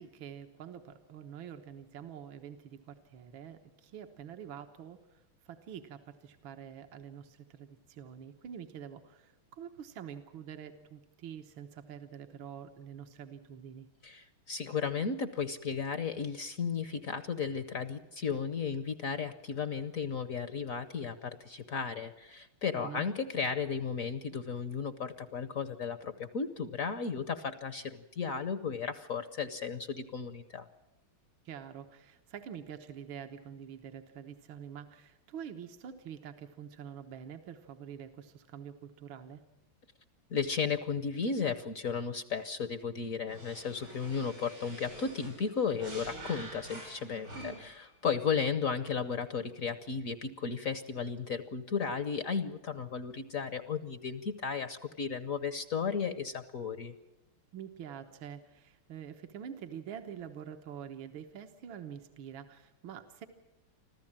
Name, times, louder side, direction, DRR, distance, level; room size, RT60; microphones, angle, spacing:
voice 1, 0.0-13.9 22.8-23.1 31.5-39.4 47.3-47.6 57.5-63.3, right 8 dB, 70° right, 6 dB, 2.0 m, -46 dB
voice 2, 14.0-30.7 40.3-47.7 48.0-56.9, left 6 dB, 50° left, 12 dB, 1.1 m, -34 dB
sound 1, 43.3-47.8, right 1 dB, 90° right, 9.1 m, -47 dB
25.5 x 14.5 x 8.8 m, 1.0 s
omnidirectional pair, 2.2 m